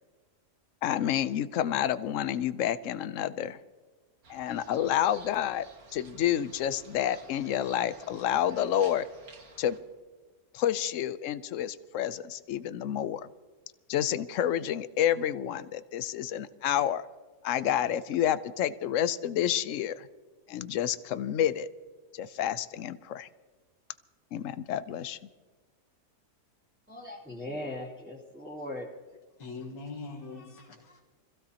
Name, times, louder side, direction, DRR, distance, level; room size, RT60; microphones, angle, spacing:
voice 1, 0.8-3.6 4.3-5.7 5.9-9.1 9.6-9.8 10.5-13.3 13.9-17.0 17.4-20.1 20.5-21.7 22.1-23.3 24.3-25.2, left 10 dB, 65° left, 14 dB, 0.8 m, -29 dB
sound 1, 4.2-9.8, right 3 dB, 55° right, 2.3 m, -54 dB
voice 2, 26.9-28.9, left 1 dB, 5° right, -9 dB, 2.6 m, -39 dB
voice 3, 29.4-31.0, left 3 dB, 85° left, -2 dB, 2.5 m, -42 dB
26.0 x 15.5 x 2.9 m, 1.4 s
omnidirectional pair, 1.8 m